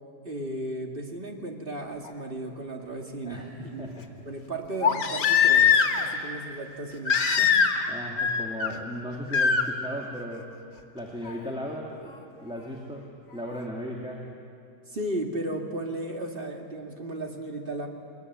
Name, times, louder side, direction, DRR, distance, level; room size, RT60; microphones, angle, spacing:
voice 1, 0.2-3.9 4.3-7.5 14.9-17.9, right 1 dB, 35° right, 2 dB, 2.3 m, -35 dB
Crying sobbing, 2.1-2.2 4.8-6.1 7.1-7.9 8.2-8.7 9.3-9.6 11.3-11.4, left 7 dB, 80° left, 2.1 m, -21 dB
voice 2, 3.2-4.1 7.9-10.5 10.9-12.1 12.4-14.3, equal, 5° right, -2 dB, 2.0 m, -36 dB
22.0 x 21.0 x 9.6 m, 2.4 s
omnidirectional pair, 1.7 m